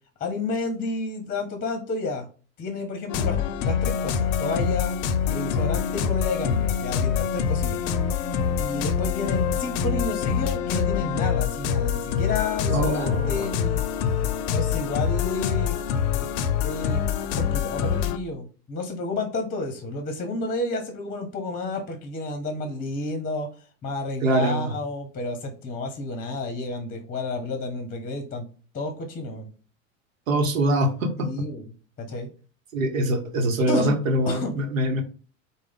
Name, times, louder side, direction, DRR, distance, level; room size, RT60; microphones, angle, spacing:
voice 1, 0.2-2.3 2.6-4.9 5.3-7.8 8.6-13.8 14.5-15.8 16.6-17.0 17.3-23.5 23.8-28.4 28.7-29.5 31.2-31.7 32.0-32.3 33.7-33.9 34.3-34.6, left 3 dB, 20° left, 5 dB, 0.8 m, -30 dB
sound 1, 3.1-18.2, left 7 dB, 50° left, 0.5 m, -25 dB
voice 2, 12.7-13.5 24.2-24.7 30.3-31.3 32.7-35.0, right 1 dB, 80° right, 6 dB, 0.9 m, -24 dB
4.8 x 2.2 x 3.5 m, 0.37 s
hypercardioid pair, 90°, 39 cm